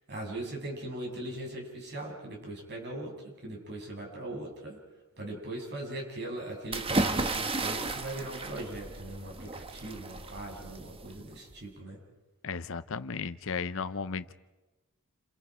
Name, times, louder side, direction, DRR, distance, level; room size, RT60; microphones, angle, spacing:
voice 1, 0.1-4.8 5.2-12.0, right 1 dB, 50° right, 0 dB, 7.9 m, -40 dB
sound 1, 6.7-11.5, right 2 dB, 25° right, 1.3 m, -33 dB
voice 2, 12.4-14.3, left 5 dB, 65° left, 12 dB, 0.8 m, -35 dB
29.5 x 27.0 x 5.1 m, 1.1 s
head